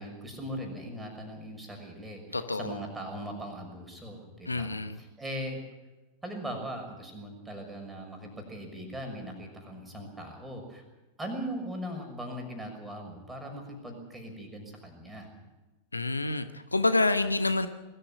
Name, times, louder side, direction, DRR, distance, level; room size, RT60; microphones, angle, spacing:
voice 1, 0.0-5.6 6.2-10.8 11.2-15.3, equal, 10° right, 2 dB, 6.3 m, -39 dB
voice 2, 2.3-2.8 4.5-5.0 15.9-17.7, left 2 dB, 80° left, 10 dB, 1.1 m, -28 dB
22.0 x 14.0 x 9.9 m, 1.1 s
figure-of-eight pair, 90°, 0 cm